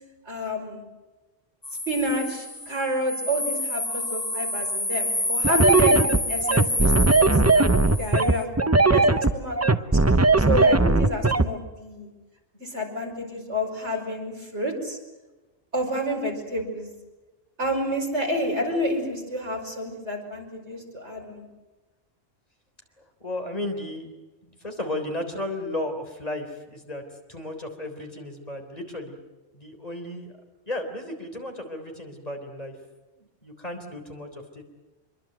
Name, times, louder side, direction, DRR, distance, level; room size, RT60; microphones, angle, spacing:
voice 1, 0.3-0.8 1.9-6.9 7.2-9.9 10.5-12.1 12.6-15.0 15.7-16.9 17.6-21.5, equal, 80° right, 1 dB, 6.0 m, -29 dB
sound 1, 1.6-8.4, left 1 dB, 20° left, 1.2 m, -28 dB
sound 2, 5.4-11.5, right 3 dB, 15° right, 0.7 m, -18 dB
voice 2, 23.0-24.1 24.4-27.0 27.3-29.2 29.5-30.3 30.7-32.8 33.2-34.6, left 1 dB, 35° left, 4 dB, 3.8 m, -34 dB
26.0 x 23.0 x 7.9 m, 1.1 s
omnidirectional pair, 1.1 m